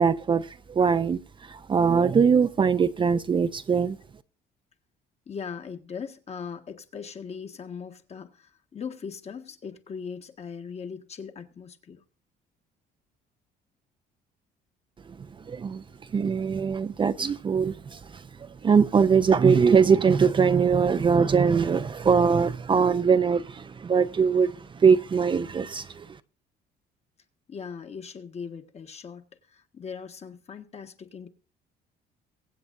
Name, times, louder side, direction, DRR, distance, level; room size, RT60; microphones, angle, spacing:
voice 1, 0.0-4.0 15.4-15.8 16.1-26.2, right 6 dB, 30° right, 0.6 m, -22 dB
voice 2, 5.3-12.0 27.5-31.3, left 6 dB, 40° left, 1.5 m, -39 dB
23.0 x 8.1 x 2.6 m
cardioid pair, 110°, 17 cm